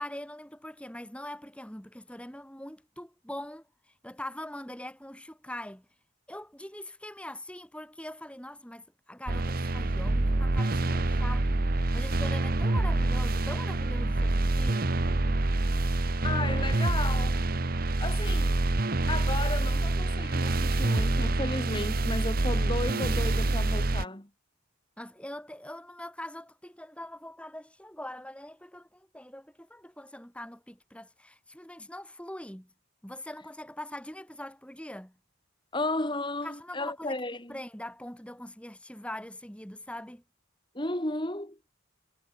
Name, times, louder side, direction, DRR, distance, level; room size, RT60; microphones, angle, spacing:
voice 1, 0.0-5.9 6.3-14.9 25.0-32.7 33.0-35.2 36.4-37.2 37.5-40.2, left 1 dB, 5° left, 3.9 m, -42 dB
sound 1, 9.3-24.0, right 2 dB, 45° right, 1.0 m, -26 dB
voice 2, 16.2-17.4 18.0-18.6 19.1-24.3 35.7-37.6 40.7-41.6, left 2 dB, 20° left, 2.2 m, -34 dB
head